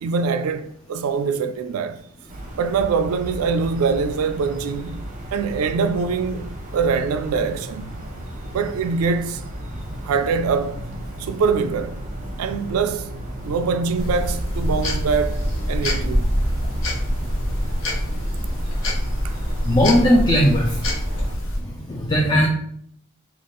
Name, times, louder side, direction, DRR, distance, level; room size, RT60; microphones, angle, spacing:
voice 1, 0.0-2.1 2.6-8.0 8.5-9.4 10.0-10.8 11.2-12.0 12.4-13.1 13.4-16.4 19.2-19.4, right 5 dB, 85° right, 0.3 m, -24 dB
sound 1, 2.3-21.3, right 1 dB, 40° right, 0.7 m, -34 dB
sound 2, 14.0-21.6, equal, 65° left, 0.9 m, -25 dB
voice 2, 19.7-20.7 21.9-22.5, equal, 20° left, 0.4 m, -17 dB
3.4 x 2.4 x 3.8 m
head